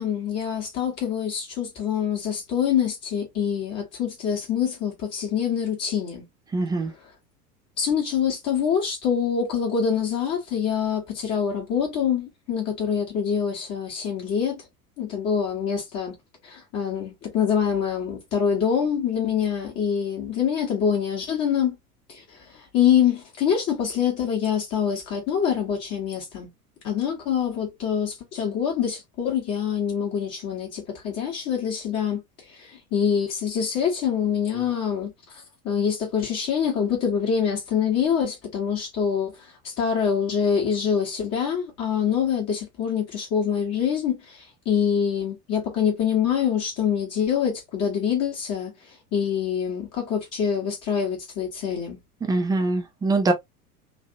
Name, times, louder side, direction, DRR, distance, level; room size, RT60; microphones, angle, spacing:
voice 1, 0.0-6.2 7.8-14.6 15.0-16.2 16.4-21.8 22.1-26.5 26.8-52.0, left 8 dB, 35° left, 1.1 m, -25 dB
voice 2, 6.5-6.9 52.2-53.3, right 2 dB, 10° right, 0.5 m, -23 dB
3.2 x 2.6 x 2.6 m
figure-of-eight pair, 80°, 46 cm